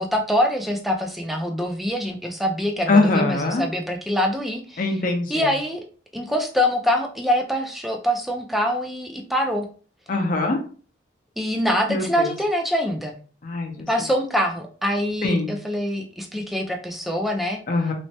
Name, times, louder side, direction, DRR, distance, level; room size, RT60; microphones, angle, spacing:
voice 1, 0.0-5.0 5.3-5.8 6.1-9.7 11.4-13.2 13.9-17.6, equal, ahead, 2 dB, 0.3 m, -24 dB
voice 2, 2.9-3.6 4.8-5.4 10.1-10.6 11.9-12.3 13.4-13.9 15.2-15.5 17.7-17.9, left 2 dB, 45° left, 3 dB, 0.6 m, -22 dB
3.2 x 2.1 x 2.7 m, 0.40 s
head